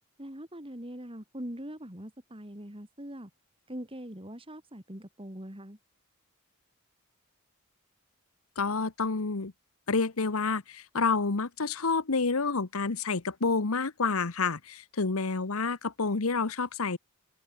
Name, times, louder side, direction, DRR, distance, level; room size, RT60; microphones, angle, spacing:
voice 1, 0.2-3.3 3.7-5.8, equal, 25° right, 4.1 m, -42 dB
voice 2, 8.6-9.5 9.9-17.0, left 4 dB, 75° left, 1.1 m, -29 dB
head